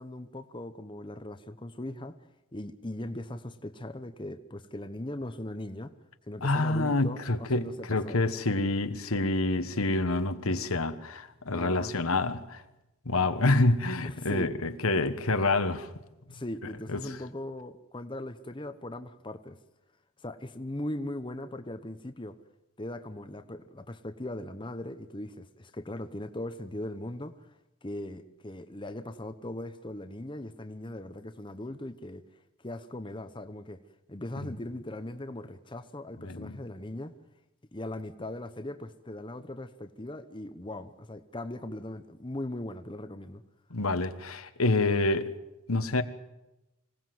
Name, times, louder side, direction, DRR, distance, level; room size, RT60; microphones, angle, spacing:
voice 1, 0.0-2.2 2.5-5.9 6.3-8.2 11.5-11.9 14.0-14.5 16.3-19.6 20.2-22.4 22.8-27.5 27.8-32.2 32.6-33.8 34.1-37.1 37.7-43.4, left 1 dB, 20° left, 0.9 m, -39 dB
voice 2, 6.4-12.6 13.0-15.9 16.9-17.2 36.2-36.6 43.7-45.3 45.7-46.0, left 2 dB, 80° left, 1.4 m, -27 dB
26.0 x 17.5 x 7.9 m
head